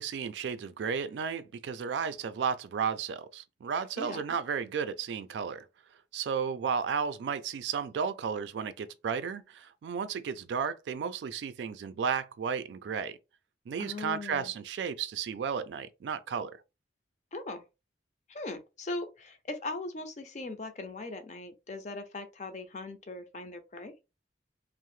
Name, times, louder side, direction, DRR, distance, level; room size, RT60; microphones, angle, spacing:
voice 1, 0.0-5.6 6.1-13.2 13.7-16.6, right 6 dB, 80° right, 0.3 m, -33 dB
voice 2, 13.8-14.5 17.3-17.6 18.3-23.9, left 2 dB, 40° left, 0.5 m, -39 dB
2.7 x 2.0 x 3.0 m
head